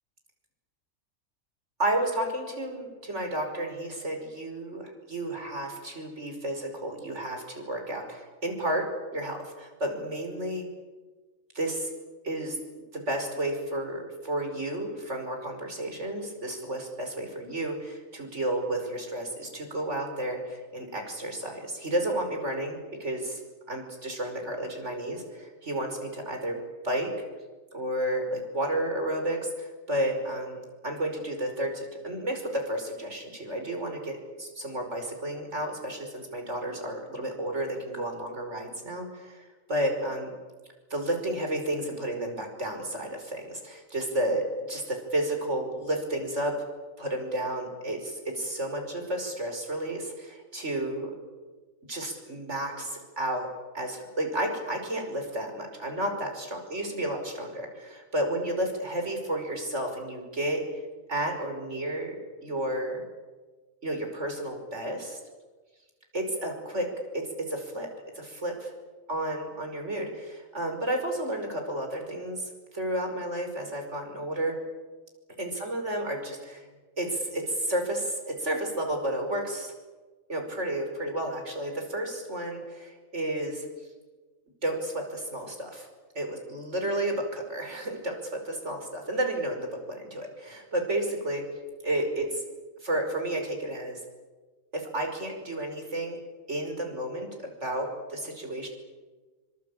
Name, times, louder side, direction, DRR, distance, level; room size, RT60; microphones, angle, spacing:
voice 1, 1.8-8.9 9.1-10.7 11.5-11.9 12.2-12.6 12.9-23.4 23.7-27.1 27.7-40.3 40.9-46.5 47.0-51.2 51.9-53.5 53.7-60.6 61.1-63.0 63.8-65.2 66.1-66.9 67.1-67.9 68.1-68.7 69.1-74.5 75.4-76.7 77.0-79.7 80.3-83.7 84.6-85.9 86.2-91.4 91.8-92.4 92.8-94.0 94.7-96.2 96.5-98.7, right 1 dB, 60° right, 4 dB, 5.6 m, -32 dB
26.0 x 25.5 x 8.6 m, 1.3 s
omnidirectional pair, 1.4 m